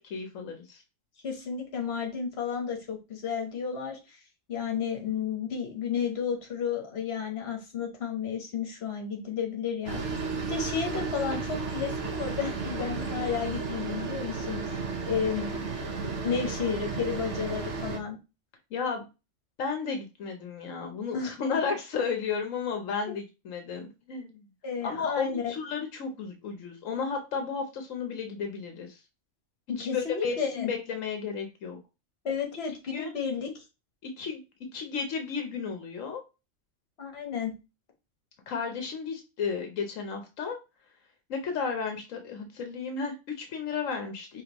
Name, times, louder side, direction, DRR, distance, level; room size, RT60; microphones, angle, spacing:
voice 1, 0.1-0.8 18.7-19.0 19.6-24.4 24.8-29.0 29.8-31.8 32.9-33.1 34.0-34.4 34.7-36.2 38.5-40.6 41.3-44.4, left 5 dB, 85° left, 5 dB, 1.2 m, -33 dB
voice 2, 1.2-4.2 4.5-14.8 15.1-18.2 21.1-21.6 24.6-25.5 29.7-30.7 32.2-33.5 37.0-37.5, left 6 dB, 55° left, 2 dB, 1.4 m, -32 dB
sound 1, 9.9-18.0, right 4 dB, 65° right, 1.2 m, -33 dB
5.1 x 3.2 x 3.0 m, 0.27 s
omnidirectional pair, 1.3 m